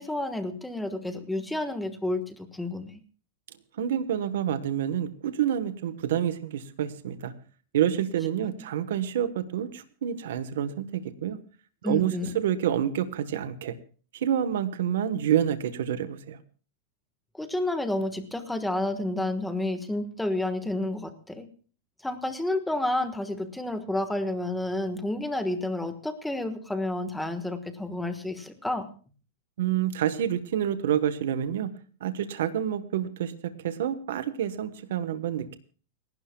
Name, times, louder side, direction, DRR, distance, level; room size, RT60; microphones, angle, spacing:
voice 1, 0.0-3.0 11.8-12.3 17.3-21.4 22.0-28.9, left 1 dB, 5° left, 8 dB, 1.4 m, -30 dB
voice 2, 3.8-7.3 7.7-11.4 11.8-13.7 14.1-16.4 29.6-31.7 32.0-35.6, right 10 dB, 75° right, 12 dB, 1.1 m, -28 dB
29.5 x 12.0 x 2.3 m, 0.39 s
supercardioid pair, 150°, 0 cm